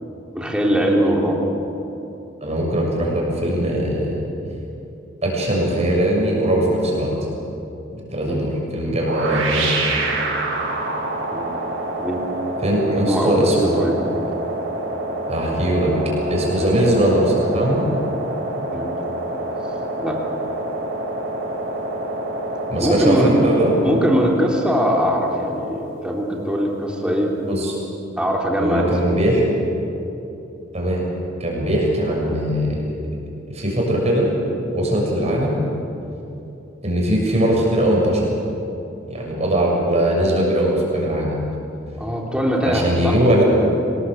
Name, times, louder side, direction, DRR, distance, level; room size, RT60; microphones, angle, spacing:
voice 1, 0.3-1.4 8.2-8.4 11.3-11.6 12.0-12.2 13.1-14.0 16.6-16.7 18.7-19.1 20.0-20.2 22.8-23.3 23.8-27.3 28.2-29.2 42.0-43.2, equal, 5° right, -2 dB, 3.5 m, -21 dB
voice 2, 2.4-4.2 5.2-7.1 7.9-9.7 12.6-13.8 15.3-15.9 16.3-17.9 22.7-23.7 27.5-27.7 28.6-29.4 30.0-30.1 30.7-31.1 31.4-32.9 33.5-34.3 34.7-35.6 36.8-38.3 39.1-41.4 42.6-43.4, right 1 dB, 35° right, -2 dB, 6.8 m, -20 dB
sound 1, 9.0-27.9, right 2 dB, 85° right, 5.7 m, -27 dB
25.5 x 20.0 x 8.0 m, 2.9 s
head